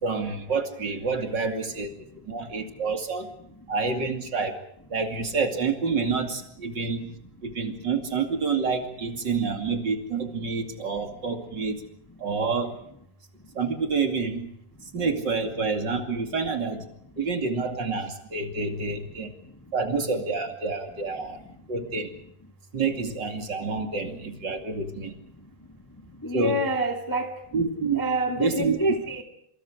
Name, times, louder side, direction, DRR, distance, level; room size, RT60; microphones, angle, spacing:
voice 1, 0.0-1.9 2.3-3.3 3.7-4.6 4.9-7.1 7.4-11.8 12.2-12.8 13.5-14.5 14.9-16.9 17.2-19.3 19.7-21.4 21.7-22.1 22.7-25.1 26.3-26.6 27.5-28.0 28.4-28.8, right 4 dB, 30° right, 2.4 m, -28 dB
voice 2, 26.2-27.4 27.9-29.2, right 1 dB, 10° left, 0.9 m, -27 dB
27.0 x 26.5 x 5.0 m
omnidirectional pair, 4.8 m